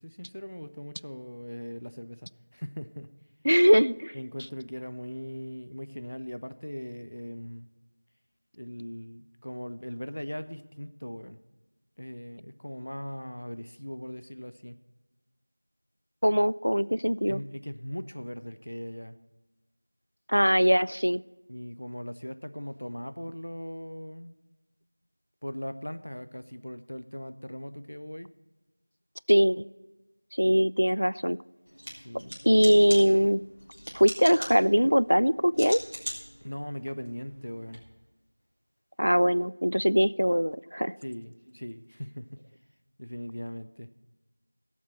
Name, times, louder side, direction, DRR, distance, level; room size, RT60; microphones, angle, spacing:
voice 1, 0.0-3.1 4.1-7.7 8.6-11.4 12.0-14.8 17.3-19.2 21.5-24.3 25.4-28.3 32.0-32.4 36.4-37.8 41.0-42.4 43.0-43.9, equal, 35° left, 11 dB, 0.4 m, -39 dB
voice 2, 3.4-4.1 16.2-17.4 20.3-21.2 29.3-29.6 30.3-31.4 32.4-33.4 33.9-35.8 39.0-40.9, equal, 80° right, 20 dB, 0.4 m, -22 dB
sound 1, 31.7-37.8, equal, 35° right, 2.6 m, -42 dB
16.5 x 7.3 x 4.4 m, 1.2 s
figure-of-eight pair, 180°, 0 cm